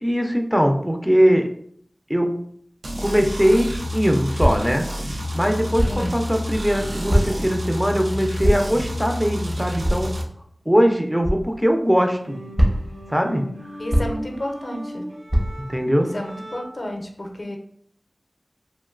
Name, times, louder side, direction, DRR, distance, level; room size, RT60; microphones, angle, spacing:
voice 1, 0.0-1.5 2.1-2.3 3.0-4.9 5.3-10.1 10.7-12.4 13.1-13.4 15.6-16.1, equal, 5° right, 3 dB, 0.4 m, -20 dB
sound 1, 2.8-10.2, left 1 dB, 90° right, 0.5 m, -29 dB
sound 2, 4.4-4.8 5.8-6.1 7.1-7.5 8.4-8.8 9.8-10.2 11.2-11.4 12.6-13.0 13.9-14.3 15.3-15.7, equal, 40° right, 0.8 m, -21 dB
voice 2, 5.9-6.2 13.8-15.1 16.1-17.6, left 1 dB, 60° left, 2 dB, 0.5 m, -31 dB
sound 3, 11.9-16.9, equal, 70° right, 0.9 m, -38 dB
3.0 x 2.4 x 2.4 m, 0.63 s
wide cardioid pair, 50°, 0 cm